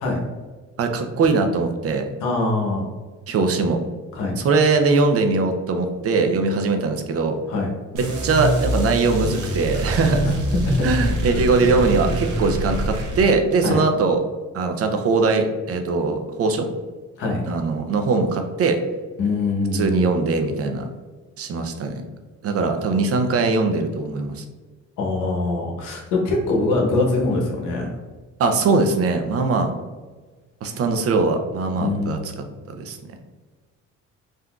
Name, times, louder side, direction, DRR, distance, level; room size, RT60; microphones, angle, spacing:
voice 1, 0.8-2.0 3.3-3.8 4.4-7.4 8.2-10.3 10.8-14.2 14.5-16.7 17.5-18.8 19.7-20.9 21.4-22.0 22.4-24.4 28.4-29.7 30.6-32.2 32.7-33.0, right 3 dB, 50° right, 6 dB, 0.5 m, -21 dB
voice 2, 2.2-2.8 4.1-4.4 7.5-7.7 10.2-10.3 10.7-10.9 11.3-11.4 13.6-13.8 17.2-17.4 19.2-19.9 25.0-27.9 31.8-32.2, left 3 dB, 90° left, 0 dB, 0.9 m, -23 dB
sound 1, 8.0-13.3, right 1 dB, 85° right, 0.8 m, -25 dB
3.7 x 2.6 x 2.3 m, 1.3 s
cardioid pair, 90°, 30 cm